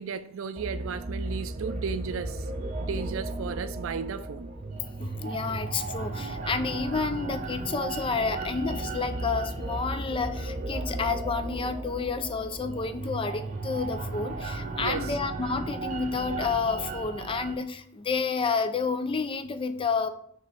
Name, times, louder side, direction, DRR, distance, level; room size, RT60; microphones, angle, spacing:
voice 1, 0.0-2.5 2.8-4.5 14.8-15.1, right 6 dB, 70° right, 0.4 m, -34 dB
sound 1, 0.6-17.6, right 2 dB, 35° right, 0.7 m, -35 dB
voice 2, 5.0-20.1, left 4 dB, 25° left, 0.4 m, -30 dB
5.9 x 3.0 x 5.5 m
head